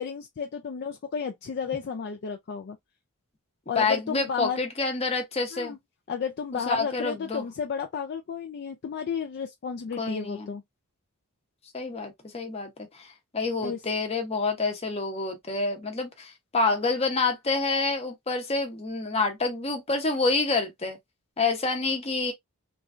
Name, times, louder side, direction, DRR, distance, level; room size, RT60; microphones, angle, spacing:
voice 1, 0.0-2.8 3.7-4.6 5.5-5.8 6.1-10.6 13.6-13.8, left 6 dB, 45° left, 0.4 m, -32 dB
voice 2, 3.8-5.8 6.7-7.4 10.0-10.5 11.7-21.0 21.4-22.3, left 3 dB, 30° left, 0.8 m, -28 dB
3.1 x 2.4 x 2.4 m
head